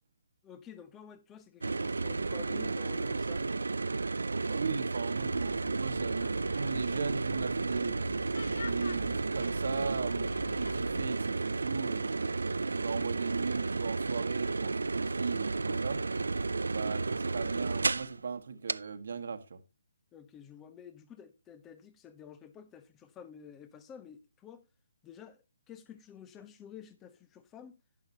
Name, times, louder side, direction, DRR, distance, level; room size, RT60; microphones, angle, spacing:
voice 1, 0.4-3.6 20.1-24.6 25.0-27.8, left 8 dB, 15° left, 1.1 m, -51 dB
sound 1, 1.6-18.2 18.7-18.8, right 3 dB, 85° right, 0.5 m, -32 dB
voice 2, 4.4-8.0 8.5-12.3 12.7-16.0 16.7-19.6, right 5 dB, 65° right, 1.5 m, -37 dB
sound 2, 5.3-11.1, left 4 dB, 70° left, 0.5 m, -45 dB
11.0 x 10.5 x 2.9 m
hypercardioid pair, 150°, 0 cm